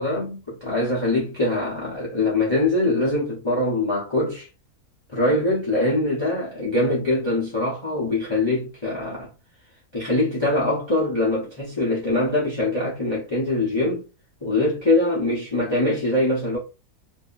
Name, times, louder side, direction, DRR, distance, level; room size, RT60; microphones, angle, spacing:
voice 1, 0.0-4.5 5.1-9.3 9.9-14.0 14.4-16.6, left 2 dB, 25° left, 0.6 m, -23 dB
2.7 x 2.5 x 2.4 m
omnidirectional pair, 1.6 m